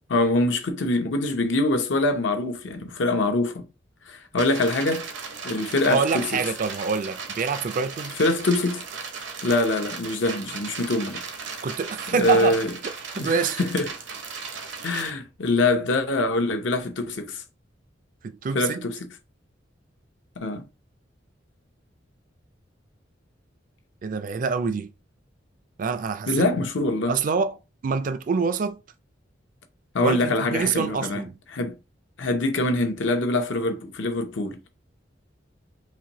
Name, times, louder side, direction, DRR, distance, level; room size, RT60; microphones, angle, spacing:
voice 1, 0.1-3.7 4.1-5.1 5.4-6.3 8.2-8.8 9.4-11.2 12.1-12.7 13.2-13.9 14.8-17.4 18.5-19.0 20.4-20.6 26.3-27.1 29.9-31.2 31.5-31.8 32.2-34.6, left 2 dB, 75° left, 0.7 m, -24 dB
sound 1, 4.4-15.1, right 5 dB, 70° right, 0.8 m, -36 dB
voice 2, 5.9-8.2 11.6-13.6 18.2-18.8 24.0-24.9 25.8-26.5 27.1-27.6 27.8-28.8 30.0-31.4, right 5 dB, 45° right, 0.4 m, -26 dB
4.1 x 2.6 x 2.9 m
head